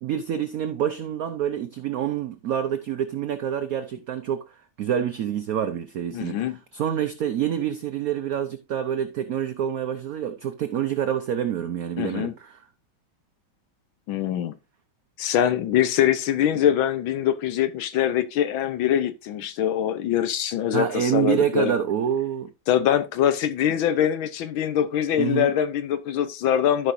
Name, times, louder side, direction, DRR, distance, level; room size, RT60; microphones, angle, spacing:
voice 1, 0.0-12.6 20.7-22.5 25.2-25.5, right 9 dB, 85° right, 0.7 m, -27 dB
voice 2, 6.1-6.6 12.0-12.3 14.1-14.6 15.2-21.7 22.7-26.9, left 10 dB, 75° left, 1.6 m, -23 dB
13.5 x 5.4 x 2.6 m
omnidirectional pair, 2.3 m